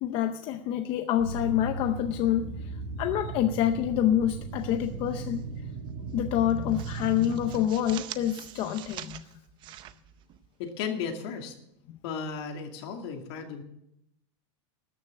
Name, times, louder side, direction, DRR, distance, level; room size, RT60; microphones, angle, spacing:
voice 1, 0.0-5.4 6.1-9.3, left 11 dB, 35° left, 7 dB, 0.6 m, -27 dB
sound 1, 1.2-7.6, right 4 dB, 80° right, 3.4 m, -37 dB
sound 2, 4.5-5.4 5.7-5.9 6.3-10.8, right 12 dB, 30° right, 0.6 m, -45 dB
voice 2, 10.6-11.5 12.0-13.6, left 6 dB, 60° left, 4 dB, 2.4 m, -35 dB
13.5 x 6.6 x 9.6 m, 0.79 s
supercardioid pair, 165°, 15 cm